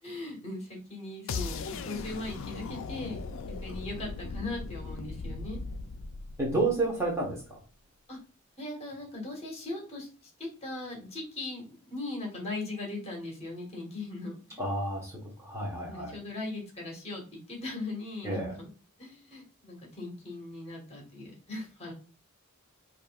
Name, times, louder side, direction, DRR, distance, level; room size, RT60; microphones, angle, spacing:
voice 1, 0.0-3.2 3.5-5.6 8.1-8.2 8.6-14.6 15.9-18.7 19.0-21.9, left 2 dB, 30° left, 0 dB, 1.4 m, -39 dB
sound 1, 1.3-7.3, left 4 dB, 65° left, 0.4 m, -38 dB
voice 2, 6.4-7.6 14.6-16.1 18.2-18.5, right 2 dB, 15° right, -3 dB, 1.0 m, -30 dB
5.2 x 2.6 x 2.3 m, 0.36 s
head